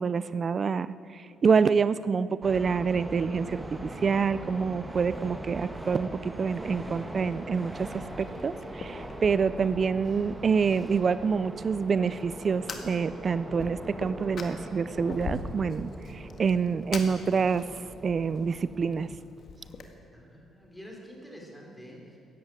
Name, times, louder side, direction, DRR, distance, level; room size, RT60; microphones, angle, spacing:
voice 1, 0.0-19.1, right 5 dB, 45° right, 16 dB, 0.4 m, -27 dB
sound 1, 2.4-19.2, right 1 dB, 15° right, 1.6 m, -41 dB
sound 2, 4.6-10.5, right 1 dB, 90° right, 4.1 m, -57 dB
Fire, 6.9-19.8, left 4 dB, 55° left, 1.8 m, -44 dB
voice 2, 20.1-22.2, equal, 5° left, -1 dB, 4.3 m, -47 dB
14.5 x 10.5 x 8.8 m, 2.9 s
cardioid pair, 90°, 0 cm